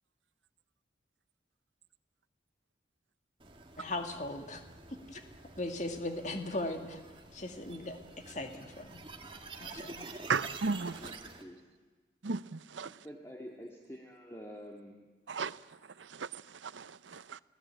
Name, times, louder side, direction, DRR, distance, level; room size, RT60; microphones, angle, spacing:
sound 1, 3.4-11.4, right 3 dB, 25° right, 2.2 m, -48 dB
voice 1, 3.8-4.6 5.1-5.2 5.6-7.0 7.3-8.0 8.3-9.0 9.6-10.1, left 2 dB, 40° left, 2.1 m, -38 dB
voice 2, 10.3-11.0 12.2-12.9 15.3-15.6 16.2-17.4, right 4 dB, 85° right, 0.7 m, -35 dB
voice 3, 10.9-11.7 12.8-15.1, equal, 15° left, 2.1 m, -48 dB
30.0 x 18.0 x 8.9 m
head